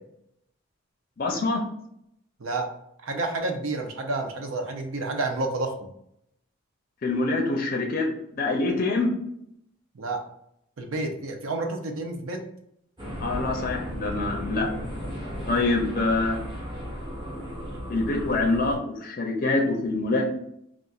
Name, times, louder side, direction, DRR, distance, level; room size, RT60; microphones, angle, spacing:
voice 1, 1.2-1.6 7.0-9.1 13.2-14.7 15.5-16.4 17.9-20.3, left 2 dB, 40° left, 0 dB, 0.5 m, -25 dB
voice 2, 2.4-2.7 3.0-5.9 9.9-10.2 10.8-12.4, right 2 dB, 75° right, 4 dB, 0.6 m, -30 dB
sound 1, 13.0-18.8, equal, 25° right, 0.9 m, -35 dB
3.9 x 2.4 x 2.4 m, 0.75 s
head